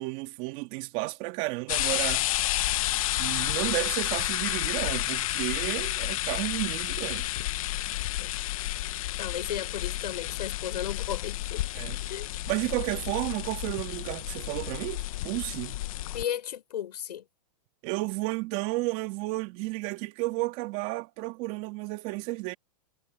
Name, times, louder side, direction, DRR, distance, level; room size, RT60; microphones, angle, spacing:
voice 1, 0.0-2.3 3.2-7.3 11.7-12.0 12.5-15.8 17.8-22.5, right 22 dB, 35° right, 2.7 m, -32 dB
sound 1, 1.7-16.2, left 15 dB, 60° left, 1.1 m, -31 dB
voice 2, 9.2-11.6 12.1-12.3 16.1-17.2, left 10 dB, 90° left, 6.9 m, -34 dB
supercardioid pair, 155°, 20 cm